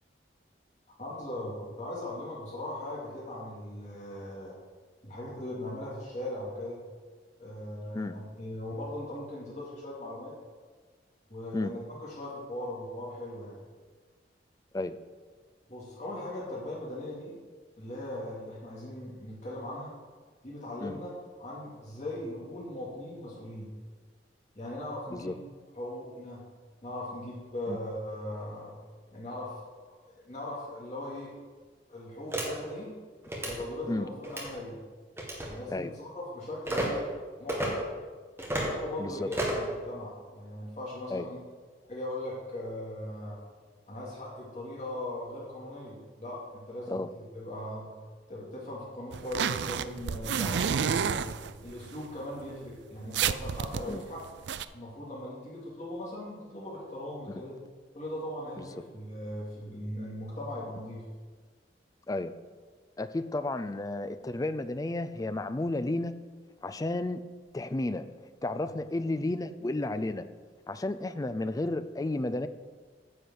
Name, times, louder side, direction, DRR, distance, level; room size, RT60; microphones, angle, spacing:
voice 1, 1.0-4.5 5.0-6.8 7.4-10.3 11.3-13.6 15.7-17.3 17.8-19.9 20.4-21.1 21.4-23.7 24.5-25.3 25.7-26.4 26.8-28.7 29.1-29.6 29.9-31.3 31.9-32.9 33.4-34.8 35.4-37.0 37.4-37.8 38.5-41.4 41.9-43.4 43.9-47.0 47.3-47.9 48.3-51.3 51.6-54.2 54.7-57.5 57.9-61.0, left 1 dB, 40° left, -6 dB, 2.4 m, -39 dB
sound 1, 32.3-32.5 33.2-33.5 34.2-34.5 35.2-35.5 36.6-36.9 37.5-37.7 38.4-38.7 39.3-39.7, right 1 dB, 15° right, 1.9 m, -31 dB
voice 2, 39.0-39.3 41.1-41.3 46.9-47.1 53.9-54.0 58.6-58.7 62.1-62.3 63.0-66.1 66.6-67.2 67.5-68.1 68.4-70.3 70.7-72.5, left 2 dB, 20° left, 11 dB, 0.4 m, -32 dB
sound 2, 49.1-51.9 52.4-52.5 52.8-52.9 53.1-54.7, right 7 dB, 75° right, 0.4 m, -30 dB
9.8 x 5.1 x 7.8 m, 1.5 s
head